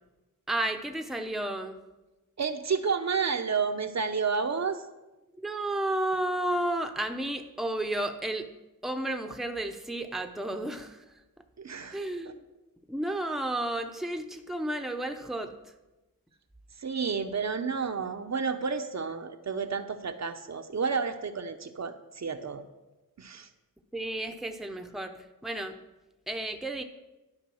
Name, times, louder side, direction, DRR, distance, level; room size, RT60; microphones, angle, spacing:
voice 1, 0.5-1.8 5.4-8.5 8.8-11.2 11.9-12.4 12.9-15.5 23.9-25.8 26.3-26.8, right 1 dB, ahead, 5 dB, 0.7 m, -32 dB
voice 2, 2.4-4.8 11.6-12.0 16.8-22.6 23.2-23.5, right 5 dB, 50° right, 7 dB, 0.7 m, -30 dB
11.5 x 5.1 x 6.2 m, 1.1 s
wide cardioid pair, 80°, 35 cm